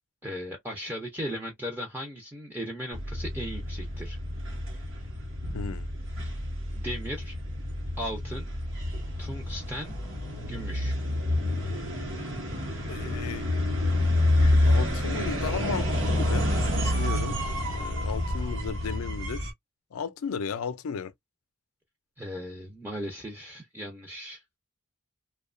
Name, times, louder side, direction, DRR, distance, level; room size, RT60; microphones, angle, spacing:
voice 1, 0.2-4.2 6.7-7.4 8.0-8.5 9.2-10.0 10.4-11.0 22.2-24.4, equal, 10° right, 0.5 m, -37 dB
sound 1, 2.9-19.5, left 1 dB, 55° right, 0.9 m, -28 dB
voice 2, 5.5-5.9 12.9-13.5 14.4-16.5 16.8-17.4 17.7-19.5 19.9-21.1, left 6 dB, 85° left, 0.4 m, -35 dB
2.7 x 2.2 x 2.5 m
head